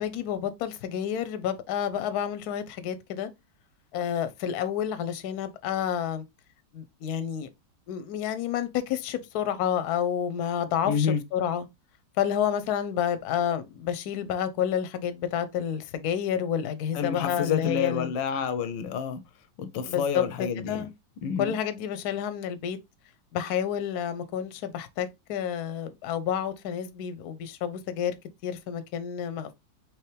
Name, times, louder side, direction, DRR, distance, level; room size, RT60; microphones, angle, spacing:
voice 1, 0.0-3.3 3.9-6.2 6.7-7.5 7.9-11.6 12.2-18.1 19.8-20.2 20.7-20.9 21.4-22.8 23.3-28.2 28.4-29.6, left 9 dB, 65° left, 1.1 m, -29 dB
voice 2, 10.8-11.2 16.9-19.2 19.6-20.9 21.2-21.6, left 7 dB, 85° left, 1.3 m, -29 dB
4.5 x 3.2 x 3.2 m
omnidirectional pair, 2.0 m